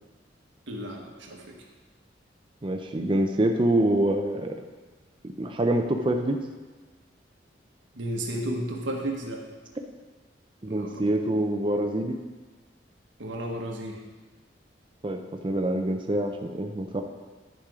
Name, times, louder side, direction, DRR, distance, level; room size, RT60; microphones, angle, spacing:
voice 1, 0.7-1.6 7.9-9.4 10.7-11.0 13.2-14.0, right 1 dB, 90° right, 1 dB, 1.3 m, -33 dB
voice 2, 2.6-4.6 5.4-6.4 10.6-12.2 15.0-17.0, right 1 dB, 25° right, 3 dB, 0.5 m, -25 dB
10.5 x 5.2 x 4.9 m, 1.4 s
head